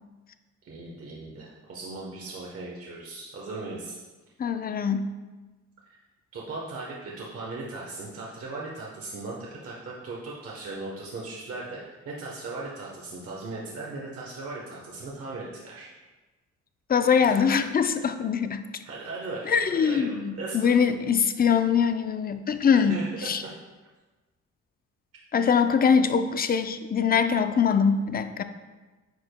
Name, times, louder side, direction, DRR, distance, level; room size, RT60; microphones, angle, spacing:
voice 1, 0.6-4.0 5.9-6.0 6.3-15.9 17.3-17.6 18.8-20.8 22.9-23.3, right 3 dB, 50° right, -3 dB, 1.1 m, -38 dB
voice 2, 4.4-5.1 16.9-18.6 19.5-23.0 23.2-23.4 25.3-28.4, left 6 dB, 30° left, 9 dB, 0.4 m, -23 dB
9.3 x 4.9 x 2.2 m, 1.2 s
cardioid pair, 90°, 30 cm